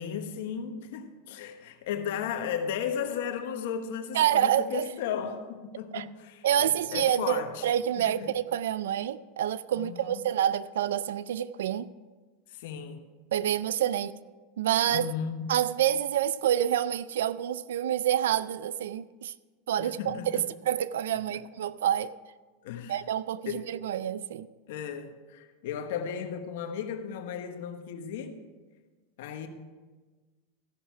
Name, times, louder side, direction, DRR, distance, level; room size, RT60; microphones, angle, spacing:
voice 1, 0.0-7.7 8.0-8.4 9.7-10.3 12.5-13.0 14.9-15.5 19.8-20.5 22.6-23.0 23.4-23.6 24.7-28.4 29.2-29.5, left 8 dB, 70° left, 1.2 m, -35 dB
voice 2, 4.1-4.8 5.9-6.1 6.4-11.9 13.3-14.1 14.6-15.1 15.5-19.3 19.7-22.1 22.9-24.5, right 10 dB, 85° right, 0.4 m, -27 dB
14.5 x 5.9 x 5.7 m
supercardioid pair, 120°, 0 cm